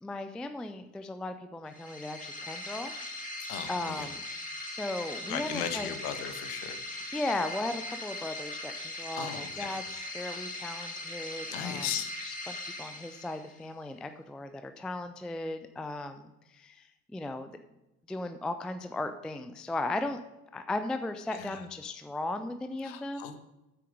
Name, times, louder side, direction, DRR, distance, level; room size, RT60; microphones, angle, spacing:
voice 1, 0.0-2.9 3.7-4.2 4.7-5.9 6.9-11.9 12.2-17.6 18.1-20.2 20.5-23.4, left 2 dB, ahead, 9 dB, 0.3 m, -37 dB
sound 1, 1.7-13.6, left 1 dB, 20° left, 2.3 m, -40 dB
voice 2, 3.5-4.1 5.3-6.8 9.2-9.8 11.5-12.1 21.3-21.6 22.8-23.4, left 9 dB, 55° left, 9 dB, 1.4 m, -37 dB
9.2 x 7.8 x 5.3 m, 0.97 s
figure-of-eight pair, 65°, 44 cm